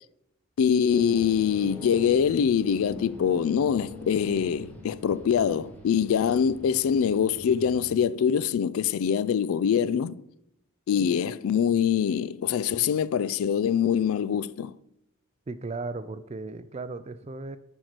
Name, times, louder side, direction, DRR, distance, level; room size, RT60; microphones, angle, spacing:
voice 1, 0.6-10.2 10.9-14.7, left 7 dB, 70° left, 0.3 m, -24 dB
sound 1, 0.9-8.0, equal, 10° left, 1.1 m, -44 dB
voice 2, 15.5-17.6, right 3 dB, 30° right, 0.3 m, -36 dB
6.4 x 4.7 x 5.9 m
head